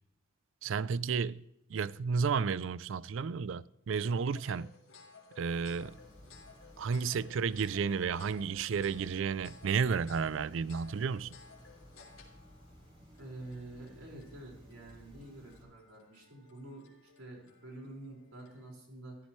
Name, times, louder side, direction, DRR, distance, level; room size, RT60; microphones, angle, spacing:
voice 1, 0.6-1.4 1.7-4.7 5.4-6.0 6.8-11.3, right 5 dB, 65° right, 0.4 m, -32 dB
sound 1, 3.9-18.7, left 5 dB, 85° left, 2.9 m, -58 dB
sound 2, 5.4-15.6, equal, 25° right, 2.9 m, -57 dB
voice 2, 13.2-16.9 17.2-19.2, right 2 dB, 85° right, 5.1 m, -48 dB
14.0 x 13.5 x 3.2 m
head